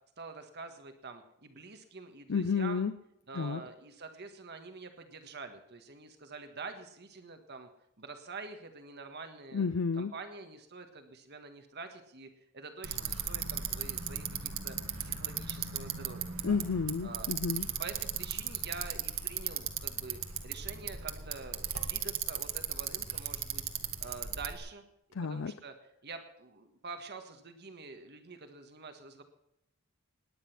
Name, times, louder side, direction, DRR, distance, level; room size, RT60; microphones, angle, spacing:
voice 1, 0.2-2.8 3.3-7.7 8.0-9.7 9.9-16.6 17.0-17.3 17.8-23.7 24.0-24.8 25.2-25.7 26.0-29.2, right 4 dB, 50° right, 7 dB, 1.6 m, -46 dB
voice 2, 2.3-2.9 3.3-3.6 9.5-10.1 16.4-17.7 25.1-25.5, left 5 dB, 60° left, 13 dB, 0.5 m, -31 dB
Bicycle, 12.8-24.6, right 9 dB, 65° right, 1.7 m, -37 dB
18.5 x 10.0 x 6.0 m, 0.83 s
head